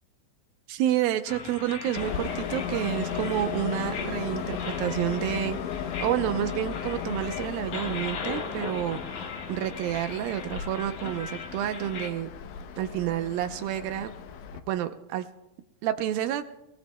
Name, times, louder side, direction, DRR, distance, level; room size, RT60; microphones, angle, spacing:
voice 1, 0.7-5.6 6.0-12.3 12.8-14.1 14.7-15.3 15.8-16.4, right 12 dB, 80° right, 8 dB, 2.2 m, -29 dB
sound 1, 1.3-12.1, left 5 dB, 55° left, 2.4 m, -39 dB
Train, 2.0-14.6, left 8 dB, 85° left, 1.7 m, -36 dB
28.0 x 18.0 x 2.2 m, 0.92 s
omnidirectional pair, 4.7 m